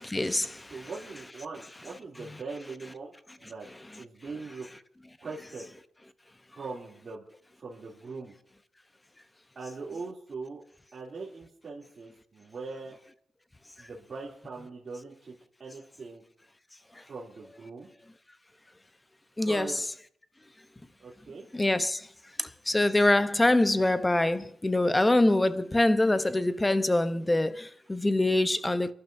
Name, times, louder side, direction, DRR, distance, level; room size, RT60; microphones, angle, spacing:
voice 1, 0.0-0.7 19.4-19.7 21.5-22.0 22.4-28.9, left 1 dB, 15° left, 0.8 m, -24 dB
voice 2, 0.7-3.7 4.0-4.7 5.2-5.7 6.5-7.2 7.6-8.3 9.5-10.6 10.9-13.0 13.8-15.3 15.6-16.2 17.0-17.9 19.4-19.8 21.0-21.5, right 4 dB, 50° right, 2.8 m, -41 dB
28.5 x 11.5 x 2.7 m
cardioid pair, 85°, 0 cm